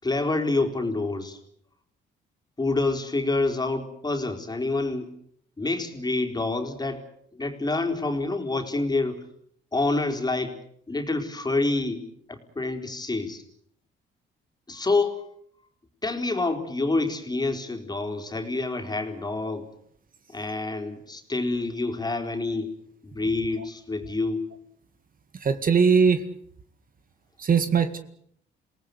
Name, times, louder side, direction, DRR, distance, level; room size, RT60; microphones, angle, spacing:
voice 1, 0.0-1.4 2.6-5.1 5.6-7.0 7.3-9.2 9.7-10.6 10.9-13.4 14.7-15.2 16.0-19.7 20.3-22.7 23.0-24.4, left 3 dB, 20° left, 4 dB, 4.3 m, -27 dB
voice 2, 25.3-26.3 27.4-28.0, right 6 dB, 45° right, 10 dB, 2.0 m, -21 dB
28.0 x 18.5 x 8.1 m, 0.66 s
cardioid pair, 90°, 20 cm